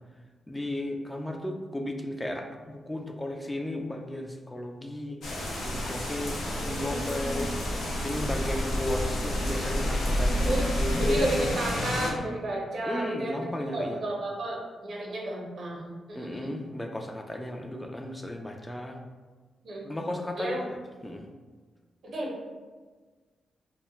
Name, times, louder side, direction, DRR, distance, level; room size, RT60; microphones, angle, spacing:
voice 1, 0.5-5.2 5.6-7.5 8.0-11.3 12.8-14.0 16.1-19.0 19.8-20.7 21.0-21.3, left 1 dB, 15° left, 2 dB, 0.3 m, -34 dB
sound 1, 5.2-12.1, equal, 80° left, 0.5 m, -29 dB
voice 2, 6.5-7.4 10.4-10.7 11.0-16.6 19.6-19.9 20.4-20.6 22.0-22.3, right 1 dB, 70° right, -2 dB, 0.7 m, -33 dB
2.2 x 2.0 x 3.0 m, 1.4 s
supercardioid pair, 55°, 0 cm